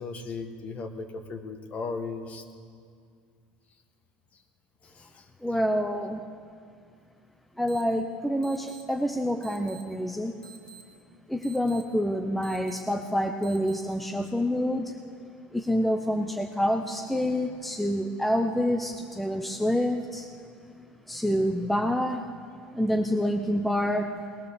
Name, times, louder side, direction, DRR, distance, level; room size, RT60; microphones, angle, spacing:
voice 1, 0.0-2.4 4.8-5.3 21.3-21.8, left 4 dB, 35° left, 6 dB, 1.9 m, -37 dB
voice 2, 5.4-6.2 7.6-10.3 11.3-15.0 15.5-20.3 21.1-22.3 22.7-24.2, equal, ahead, 4 dB, 0.8 m, -27 dB
sound 1, 7.7-7.8 8.4-8.8 9.4-9.8 10.4-10.8 11.4-11.8 12.4-12.8 13.4-13.8, right 6 dB, 20° left, 2.6 m, -48 dB
20.0 x 18.5 x 7.1 m, 2.2 s
supercardioid pair, 130°, 4 cm